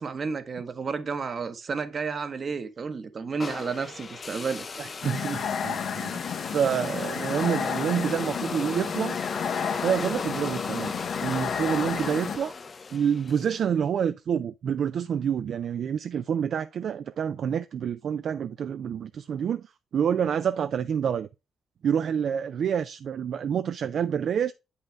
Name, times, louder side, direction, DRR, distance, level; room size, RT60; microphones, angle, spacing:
voice 1, 0.0-4.7 5.6-5.7 6.1-6.2, right 5 dB, 45° right, 1.1 m, -32 dB
sound 1, 3.4-13.6, left 4 dB, 35° left, 0.5 m, -36 dB
voice 2, 4.8-6.1 6.5-9.2 9.8-10.9 11.2-12.5 12.9-21.3 21.8-24.5, right 8 dB, 65° right, 0.3 m, -28 dB
sound 2, 5.0-12.4, left 7 dB, 75° left, 0.8 m, -32 dB
7.7 x 5.6 x 3.4 m
cardioid pair, 90°, 0 cm